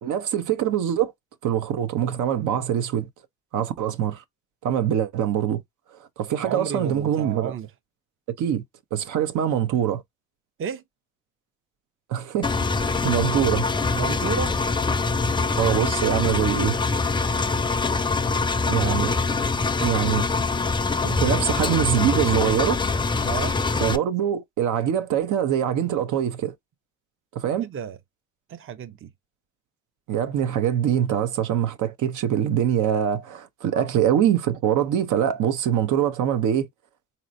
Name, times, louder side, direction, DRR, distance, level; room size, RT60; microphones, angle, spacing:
voice 1, 0.0-1.1 1.4-3.1 3.5-4.2 4.6-5.6 6.2-7.5 8.4-8.6 8.9-10.0 12.1-13.7 15.6-16.8 18.7-19.1 19.8-20.3 21.0-22.8 23.8-26.5 27.3-27.7 30.1-36.7, right 10 dB, 80° right, 0.8 m, -24 dB
voice 2, 6.4-7.7 10.6-10.8 13.9-14.5 23.2-23.5 27.6-28.0 28.5-29.1 33.7-33.9, right 7 dB, 45° right, 0.6 m, -32 dB
Engine, 12.4-24.0, left 4 dB, 15° left, 0.4 m, -24 dB
4.1 x 2.9 x 2.5 m
cardioid pair, 90°, 30 cm